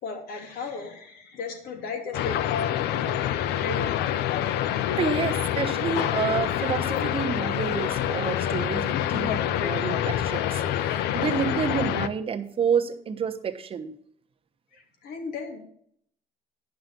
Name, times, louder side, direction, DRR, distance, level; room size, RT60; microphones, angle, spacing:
voice 1, 0.0-4.0 14.7-15.6, left 4 dB, 65° left, 2 dB, 2.9 m, -35 dB
sound 1, 2.1-12.1, left 11 dB, 85° left, 0.6 m, -26 dB
voice 2, 4.9-13.9, right 7 dB, 35° right, 7 dB, 1.0 m, -29 dB
10.5 x 5.9 x 6.7 m, 0.65 s
cardioid pair, 140°, 17 cm